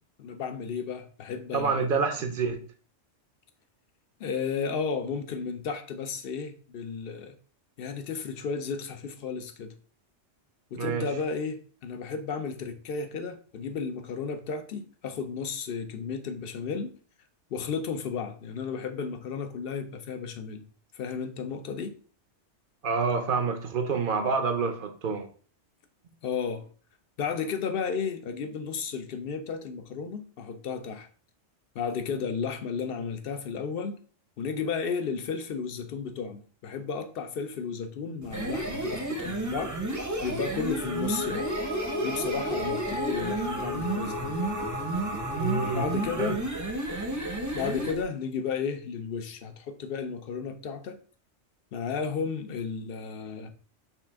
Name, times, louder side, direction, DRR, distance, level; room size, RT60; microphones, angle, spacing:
voice 1, 0.2-1.9 4.2-7.3 7.8-9.7 10.7-16.9 17.5-20.6 20.9-21.9 26.2-26.7 27.2-31.1 31.7-34.0 34.4-39.7 40.2-41.5 42.0-44.4 45.7-46.4 47.5-51.0 51.7-53.5, left 6 dB, 60° left, 0.7 m, -33 dB
voice 2, 1.5-2.6 10.7-11.1 22.8-25.3 45.1-46.4, right 5 dB, 55° right, 0.8 m, -28 dB
sound 1, 38.2-48.0, right 2 dB, 20° right, 0.6 m, -32 dB
sound 2, 40.7-46.5, left 2 dB, 85° left, 1.8 m, -35 dB
5.6 x 2.5 x 3.5 m
omnidirectional pair, 1.2 m